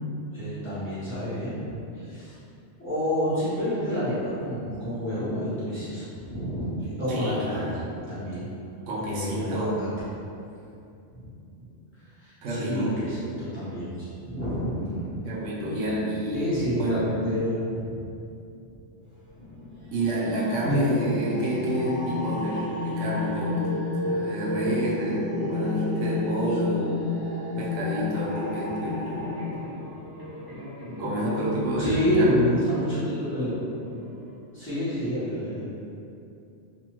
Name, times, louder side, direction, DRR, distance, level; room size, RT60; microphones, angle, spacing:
voice 1, 0.3-2.4 2.8-7.6 8.1-8.5 9.0-9.9 11.1-11.3 12.2-13.9 14.2-15.0 16.3-18.0 20.7-20.8 31.8-33.6 34.5-35.7, equal, 10° left, -14 dB, 0.9 m, -28 dB
voice 2, 7.1-7.8 8.9-9.8 12.4-13.0 15.2-17.1 19.9-23.8 24.1-27.0 27.3-29.3 31.0-32.5, right 1 dB, 90° right, -5 dB, 1.0 m, -29 dB
sound 1, 19.3-29.5, left 3 dB, 45° left, 1.1 m, -31 dB
sound 2, 28.3-34.4, equal, 30° right, 0.4 m, -40 dB
2.7 x 2.3 x 3.0 m, 2.6 s
omnidirectional pair, 1.2 m